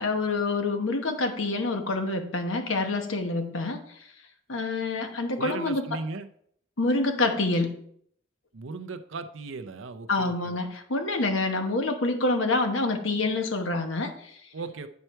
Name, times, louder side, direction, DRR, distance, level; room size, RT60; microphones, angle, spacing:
voice 1, 0.0-4.1 4.5-6.0 6.8-7.7 10.1-14.4, left 2 dB, 70° left, 6 dB, 1.0 m, -27 dB
voice 2, 5.4-6.3 8.5-10.6 14.5-14.9, right 3 dB, 70° right, 8 dB, 0.6 m, -37 dB
9.5 x 4.5 x 4.5 m, 0.66 s
head